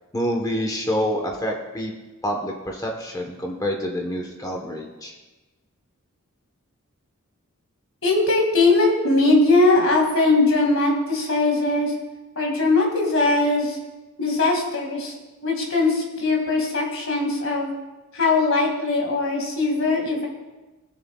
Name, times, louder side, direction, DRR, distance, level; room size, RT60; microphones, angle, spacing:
voice 1, 0.1-1.9 2.2-5.1, equal, 15° left, 1 dB, 1.0 m, -27 dB
voice 2, 8.0-11.9 12.4-13.8 14.2-15.1 15.4-17.7 18.1-20.3, left 2 dB, 60° left, 0 dB, 2.2 m, -20 dB
20.5 x 7.1 x 2.3 m, 1.1 s
head